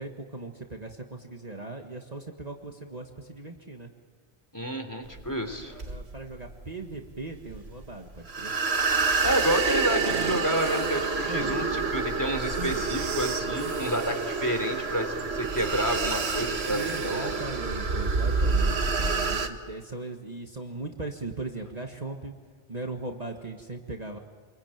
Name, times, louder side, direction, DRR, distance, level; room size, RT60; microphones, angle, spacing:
voice 1, 0.0-3.9 5.7-8.5 11.2-11.7 12.5-12.9 16.7-22.3 22.7-24.2, right 2 dB, 35° right, 3 dB, 1.8 m, -38 dB
voice 2, 4.5-5.8 9.2-17.4, equal, 15° left, 5 dB, 3.2 m, -29 dB
sound 1, 5.1-19.5, right 4 dB, 65° right, 1.9 m, -28 dB
sound 2, 9.9-17.5, right 7 dB, 85° right, 1.4 m, -41 dB
28.5 x 23.0 x 9.1 m, 1.5 s
omnidirectional pair, 1.2 m